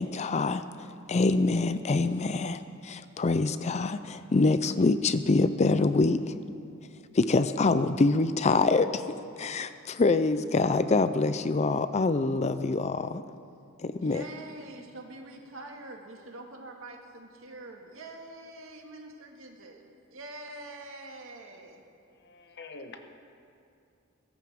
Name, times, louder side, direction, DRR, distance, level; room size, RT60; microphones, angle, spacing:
voice 1, 0.0-6.2 7.1-13.2 13.8-14.2, left 3 dB, 35° left, 12 dB, 0.5 m, -25 dB
voice 2, 14.0-19.8 20.1-21.8, right 2 dB, 75° right, 1 dB, 2.0 m, -45 dB
voice 3, 22.1-23.1, left 3 dB, 55° left, 6 dB, 1.3 m, -46 dB
21.5 x 16.0 x 3.7 m, 2.5 s
head